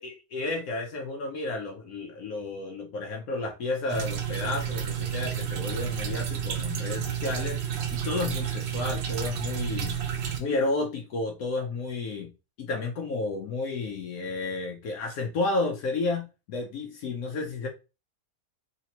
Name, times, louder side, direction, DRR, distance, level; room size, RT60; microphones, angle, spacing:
voice 1, 0.0-7.6 7.9-10.0 10.4-12.3 12.6-17.7, left 3 dB, 80° left, 1.1 m, -31 dB
sound 1, 3.9-10.4, right 9 dB, 60° right, 0.7 m, -31 dB
3.3 x 2.8 x 2.8 m
omnidirectional pair, 1.5 m